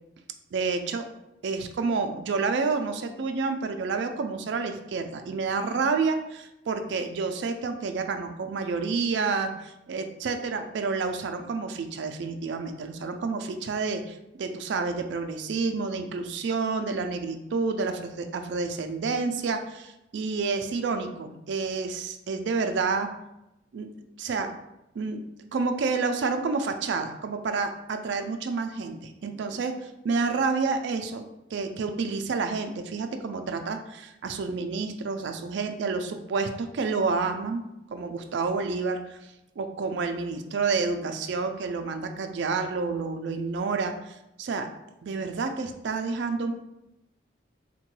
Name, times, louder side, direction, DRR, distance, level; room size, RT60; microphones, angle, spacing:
voice 1, 0.5-1.1 1.4-23.1 23.7-23.9 24.2-24.5 24.9-25.2 25.5-37.6 37.9-39.2 39.6-44.7 45.0-46.5, right 4 dB, 65° right, 7 dB, 0.3 m, -29 dB
3.6 x 2.2 x 3.0 m, 0.89 s
head